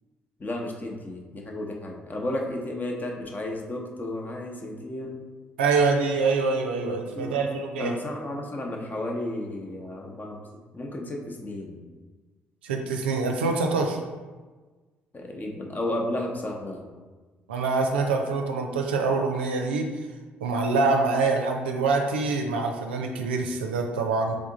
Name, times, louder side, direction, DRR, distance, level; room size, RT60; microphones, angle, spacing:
voice 1, 0.4-5.2 6.8-10.5 10.7-11.8 15.1-16.9, left 1 dB, 30° left, 1 dB, 0.9 m, -33 dB
voice 2, 5.6-8.0 12.6-14.0 17.5-19.9 20.4-24.4, right 4 dB, 80° right, 2 dB, 0.4 m, -25 dB
3.7 x 3.6 x 3.8 m, 1.3 s
figure-of-eight pair, 45°, 6 cm